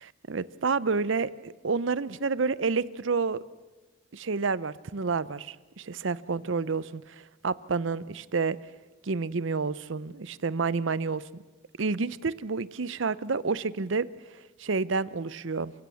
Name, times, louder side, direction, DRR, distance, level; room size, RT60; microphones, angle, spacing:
voice 1, 0.0-3.4 4.1-8.6 9.0-11.4 11.8-14.1 14.6-15.7, right 4 dB, 70° right, 18 dB, 0.7 m, -29 dB
29.0 x 16.5 x 7.1 m, 1.2 s
head